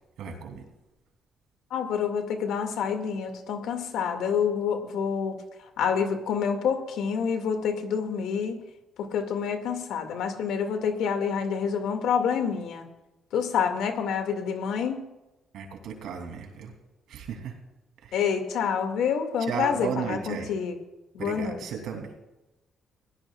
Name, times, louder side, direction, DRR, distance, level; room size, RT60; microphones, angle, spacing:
voice 1, 0.2-0.6 15.5-16.7 17.1-17.6 18.0-18.2 19.4-20.5 21.2-22.1, right 6 dB, 80° right, 4 dB, 3.0 m, -34 dB
voice 2, 1.7-5.4 5.8-8.6 9.0-12.9 13.3-15.0 18.1-20.7 21.1-21.6, left 7 dB, 85° left, 6 dB, 2.1 m, -27 dB
25.0 x 17.0 x 2.4 m, 1.0 s
cardioid pair, 90°, 0 cm